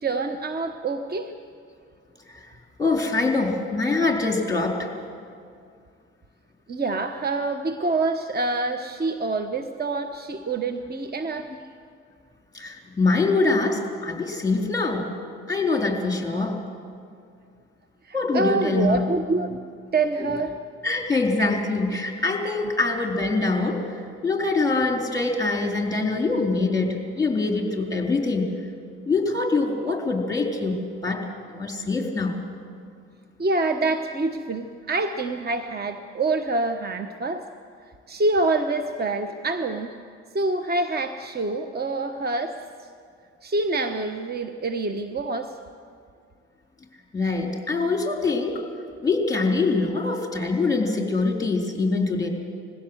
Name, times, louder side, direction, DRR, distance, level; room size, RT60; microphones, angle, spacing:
voice 1, 0.0-1.3 6.7-11.5 18.0-19.5 19.9-20.6 33.4-37.5 38.1-39.9 40.3-42.5 43.4-45.5, right 3 dB, 30° right, 8 dB, 1.1 m, -26 dB
voice 2, 2.8-4.9 12.5-15.1 15.5-16.6 18.1-19.0 20.8-23.9 24.2-28.6 29.1-31.2 31.5-32.4 47.1-48.6 49.0-52.3, left 3 dB, 10° left, 1 dB, 4.1 m, -24 dB
21.0 x 16.0 x 8.1 m, 2.3 s
hypercardioid pair, 65°, 34 cm